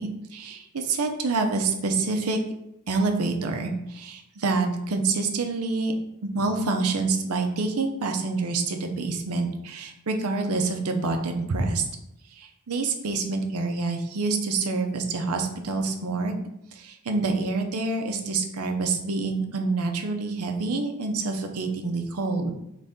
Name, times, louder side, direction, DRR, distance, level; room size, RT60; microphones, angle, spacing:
voice 1, 0.0-2.4 2.9-5.9 6.2-11.8 12.4-16.4 16.7-22.5, right 3 dB, 80° right, 4 dB, 0.7 m, -27 dB
4.0 x 3.3 x 3.6 m, 0.82 s
head